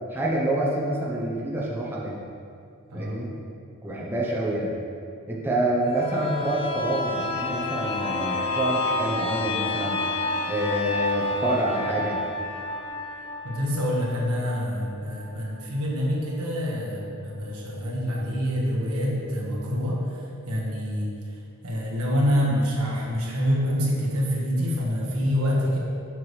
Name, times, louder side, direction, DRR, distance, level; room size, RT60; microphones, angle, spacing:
voice 1, 0.1-2.2 2.9-3.3 3.8-4.7 5.3-10.0 10.5-12.2, right 1 dB, 10° right, -5 dB, 0.8 m, -27 dB
voice 2, 2.9-3.2 13.4-20.0 20.5-21.1 21.6-25.8, equal, 90° right, -4 dB, 1.5 m, -26 dB
sound 1, 5.9-15.4 15.8-15.9, left 2 dB, 25° left, 0.4 m, -30 dB
7.4 x 6.0 x 3.3 m, 2.5 s
head